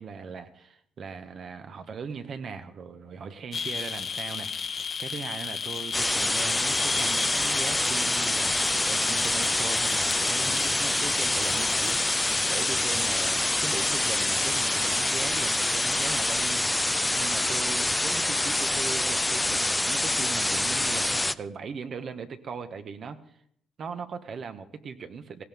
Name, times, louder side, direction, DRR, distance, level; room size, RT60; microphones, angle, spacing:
voice 1, 0.0-23.2 23.8-25.4, right 6 dB, 55° right, 8 dB, 1.5 m, -39 dB
sound 1, 3.5-16.5, left 6 dB, 50° left, 1.0 m, -35 dB
sound 2, 5.9-21.3, left 2 dB, 10° left, 0.5 m, -26 dB
18.0 x 16.5 x 3.7 m, 0.66 s
cardioid pair, 90°, 0 cm